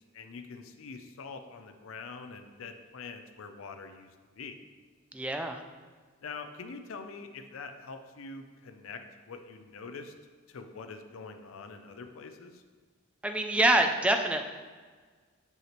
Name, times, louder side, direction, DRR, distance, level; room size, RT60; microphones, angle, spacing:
voice 1, 0.1-4.1 4.4-4.6 6.2-9.0 9.3-10.1 10.5-12.6, left 4 dB, 80° left, 7 dB, 0.5 m, -44 dB
voice 2, 5.1-5.6 13.2-14.4, right 1 dB, 5° right, 4 dB, 0.3 m, -25 dB
5.8 x 5.5 x 3.0 m, 1.5 s
head